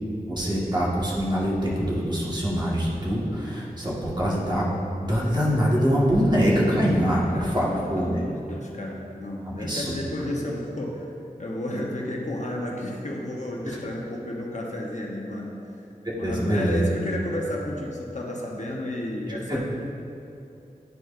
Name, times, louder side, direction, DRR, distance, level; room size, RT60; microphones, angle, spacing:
voice 1, 0.3-4.6 5.0-8.1 9.6-9.9 16.2-16.8, equal, 30° right, -6 dB, 1.5 m, -24 dB
voice 2, 7.0-11.1 11.4-15.7 16.1-19.6, left 1 dB, 50° left, -2 dB, 0.8 m, -32 dB
10.5 x 4.5 x 2.5 m, 2.8 s
wide cardioid pair, 60°, 15 cm